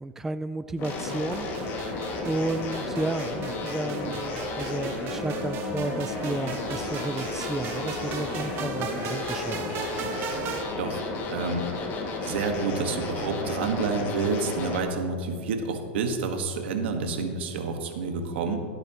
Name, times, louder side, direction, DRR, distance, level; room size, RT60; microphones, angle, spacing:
voice 1, 0.0-2.0 2.2-9.6, right 2 dB, 5° right, 11 dB, 0.3 m, -32 dB
sound 1, 0.8-14.8, left 2 dB, 40° left, 2.0 m, -32 dB
sound 2, 0.8-10.6, right 7 dB, 40° right, 1.1 m, -39 dB
voice 2, 11.3-11.7 12.2-18.6, right 4 dB, 85° right, 5 dB, 1.4 m, -29 dB
16.5 x 8.8 x 2.9 m, 2.2 s
supercardioid pair, 135°, 6 cm